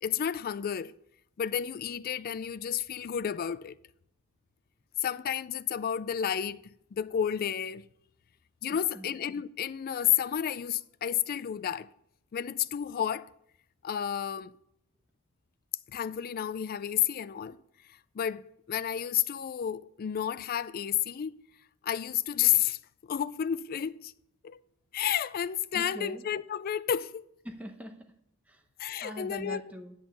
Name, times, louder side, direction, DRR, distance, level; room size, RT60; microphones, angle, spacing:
voice 1, 0.0-0.9 1.4-3.7 5.0-6.6 6.9-7.9 8.6-11.9 12.3-13.3 13.8-14.5 15.9-17.6 18.2-21.4 21.8-22.8 23.1-24.1 24.4-24.6 24.9-27.2 28.8-29.6, left 9 dB, 45° left, 0.3 m, -31 dB
voice 2, 25.7-26.2 27.4-28.1 28.5-28.6 29.0-29.9, right 1 dB, 5° right, 0.9 m, -42 dB
8.8 x 5.5 x 6.5 m
head